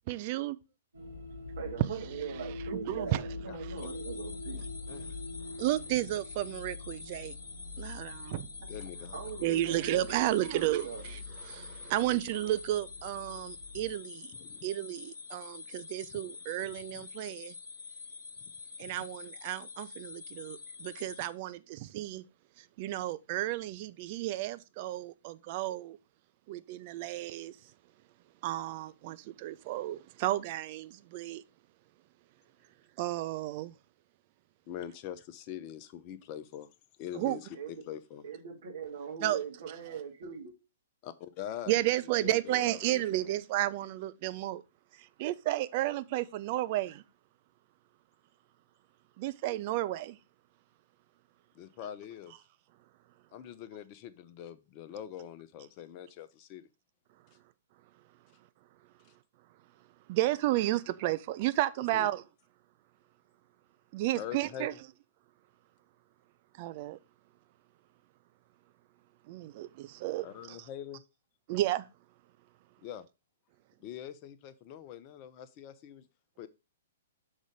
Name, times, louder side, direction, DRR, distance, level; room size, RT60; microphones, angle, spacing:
voice 1, 0.1-0.6 1.8-1.9 2.7-3.2 3.6-3.8 5.6-7.4 7.8-8.5 9.4-14.3 14.6-17.5 18.8-22.2 22.6-26.0 26.5-27.6 28.4-31.4 33.0-33.7 37.1-37.4 39.2-39.4 41.7-44.6 45.0-47.0 49.2-50.2 60.1-62.2 63.9-64.7 66.6-67.0 69.3-70.6 71.5-71.9, right 15 dB, 40° right, 0.4 m, -32 dB
sound 1, 0.9-13.9, left 2 dB, 80° right, 2.5 m, -44 dB
voice 2, 1.6-4.6 9.1-11.0 37.5-37.7 38.2-40.5, right 6 dB, 55° right, 2.2 m, -41 dB
voice 3, 3.5-3.9 4.9-5.2 8.7-9.2 14.3-14.7 16.9-17.1 18.8-19.0 34.7-36.7 37.0-38.2 41.0-41.8 42.2-43.4 51.5-52.3 53.3-56.7 61.9-62.1 64.1-64.8 70.2-71.0 72.8-73.1 73.8-76.1 76.4-76.5, left 10 dB, 35° left, 0.6 m, -44 dB
sound 2, 3.8-21.3, left 5 dB, 55° left, 1.0 m, -47 dB
6.2 x 3.9 x 5.0 m
figure-of-eight pair, 115°, 0 cm